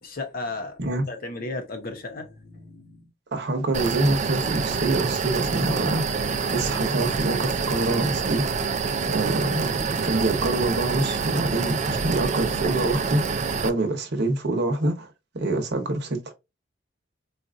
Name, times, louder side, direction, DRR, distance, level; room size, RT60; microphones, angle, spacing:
voice 1, 0.0-3.1, left 2 dB, 50° left, 0.9 m, -35 dB
voice 2, 3.3-6.2 6.5-8.5 9.0-13.2 13.6-15.1 15.3-16.3, right 2 dB, 60° right, 0.9 m, -25 dB
sound 1, 3.7-13.7, right 5 dB, 40° right, 0.4 m, -26 dB
4.0 x 2.5 x 2.4 m
head